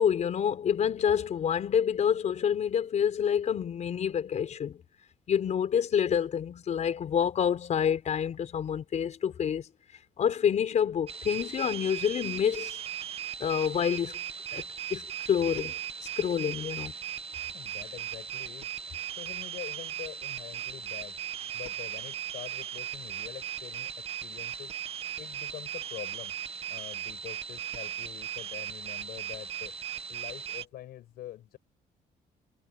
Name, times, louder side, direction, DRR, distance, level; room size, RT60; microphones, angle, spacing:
voice 1, 0.0-4.8 5.3-9.7 10.2-12.8 13.4-14.2 14.5-14.6 14.9-16.9, left 8 dB, 50° left, 4.3 m, -28 dB
sound 1, 11.1-30.6, right 9 dB, 40° right, 1.4 m, -38 dB
voice 2, 17.5-18.7 19.1-21.2 21.5-24.7 25.2-26.3 26.7-29.8 30.1-31.6, left 14 dB, 90° left, 6.1 m, -45 dB
cardioid pair, 145°, 15 cm